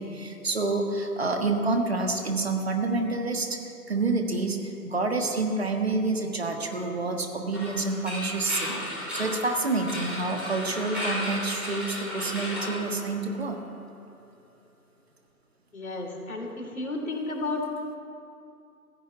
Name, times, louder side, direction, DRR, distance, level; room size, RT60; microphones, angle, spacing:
voice 1, 0.0-3.6 3.9-13.6, right 3 dB, 40° right, 4 dB, 1.5 m, -28 dB
sound 1, 7.5-13.5, equal, ahead, 4.0 m, -35 dB
voice 2, 15.7-17.6, left 2 dB, 60° left, 1 dB, 3.4 m, -32 dB
15.0 x 9.8 x 8.8 m, 2.5 s
figure-of-eight pair, 165°, 47 cm